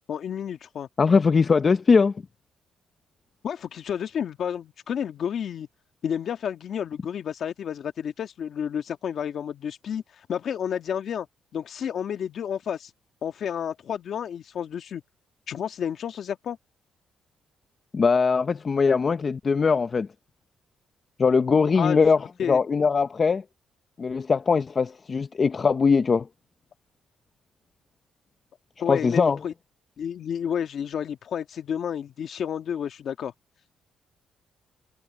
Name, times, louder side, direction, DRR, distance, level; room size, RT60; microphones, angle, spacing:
voice 1, 0.1-0.9 3.4-5.7 6.0-11.3 11.5-12.9 13.2-15.0 15.5-16.6 21.8-22.1 22.4-22.6 28.8-29.5 30.0-33.3, left 8 dB, 60° left, 1.7 m, -31 dB
voice 2, 1.0-2.1 17.9-20.1 21.2-23.4 24.0-26.3 28.9-29.4, left 5 dB, 35° left, 0.7 m, -21 dB
cardioid pair, 105°, 0 cm